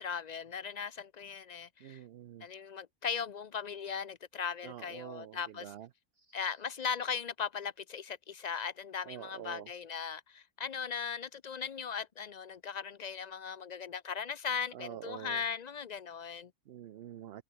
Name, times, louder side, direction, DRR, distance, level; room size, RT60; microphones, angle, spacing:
voice 1, 0.0-2.0 2.4-5.7 6.3-16.5, left 6 dB, 55° left, 0.4 m, -38 dB
voice 2, 1.8-2.5 4.6-5.9 6.2-6.6 9.1-9.7 14.7-15.4 16.7-17.4, right 11 dB, 60° right, 0.7 m, -47 dB
omnidirectional pair, 1.4 m